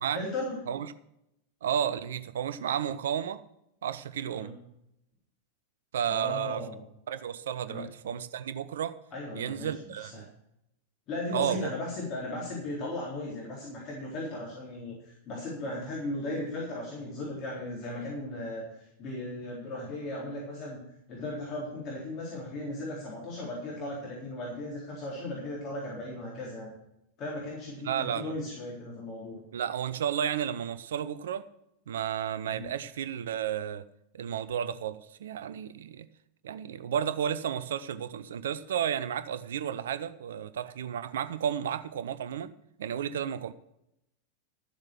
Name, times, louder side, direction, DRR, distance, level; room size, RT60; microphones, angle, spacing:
voice 1, 0.1-0.6 4.3-4.5 6.1-6.8 7.7-7.9 9.1-10.2 11.1-20.8 21.1-26.7 27.2-29.4 32.5-32.6, left 1 dB, 35° left, 3.9 m, -37 dB
voice 2, 1.6-3.4 3.8-4.5 5.9-6.6 7.1-9.0 9.3-10.3 11.3-11.7 27.8-28.3 29.5-31.5 31.9-33.8 34.1-36.1 36.4-42.5 42.8-43.5, right 9 dB, 60° right, 0.6 m, -32 dB
12.5 x 7.4 x 6.2 m
figure-of-eight pair, 90°, 0 cm